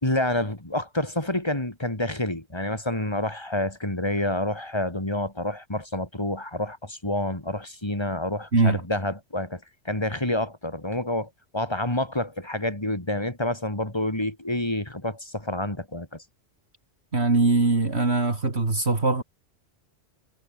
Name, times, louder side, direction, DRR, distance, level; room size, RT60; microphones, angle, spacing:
voice 1, 0.0-9.6 9.9-16.2, left 1 dB, 20° left, 3.8 m, -28 dB
voice 2, 17.1-19.2, right 3 dB, 60° right, 3.2 m, -21 dB
omnidirectional pair, 1.3 m